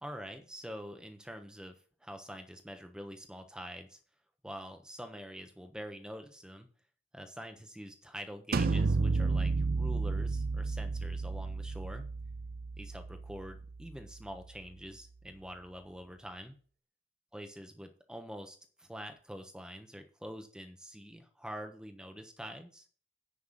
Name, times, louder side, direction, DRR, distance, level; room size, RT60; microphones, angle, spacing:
voice 1, 0.0-4.0 4.4-6.7 7.1-12.1 12.8-16.6 17.3-22.9, equal, 5° right, 6 dB, 1.1 m, -45 dB
sound 1, 8.5-14.2, right 3 dB, 50° right, 0.4 m, -32 dB
9.9 x 5.9 x 5.8 m, 0.42 s
head